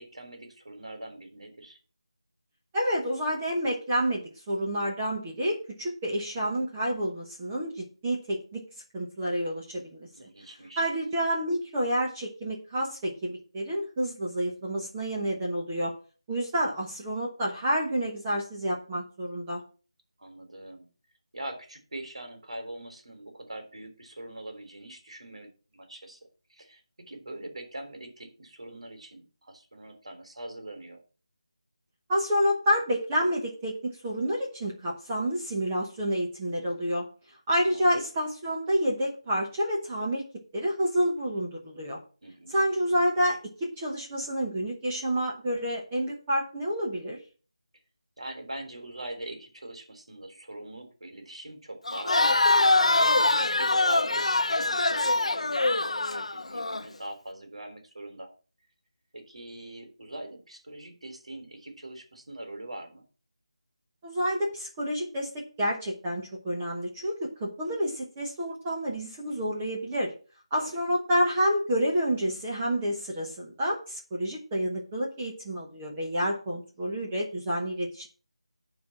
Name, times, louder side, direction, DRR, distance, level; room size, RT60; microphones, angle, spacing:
voice 1, 0.0-1.8 10.1-10.9 20.2-20.9 21.3-26.2 26.5-31.0 37.6-38.0 42.2-42.6 48.2-52.5 52.9-58.3 59.1-63.0 70.6-70.8, right 1 dB, 65° right, 5 dB, 3.7 m, -42 dB
voice 2, 2.7-8.6 8.9-10.1 10.8-15.9 16.3-19.6 32.1-37.0 37.5-40.2 40.5-42.0 42.5-47.2 64.0-70.1 70.5-78.1, equal, 10° right, -4 dB, 1.0 m, -29 dB
Crowd, 51.9-56.8, left 2 dB, 70° left, 0.9 m, -24 dB
10.0 x 4.7 x 7.1 m, 0.38 s
figure-of-eight pair, 180°, 3 cm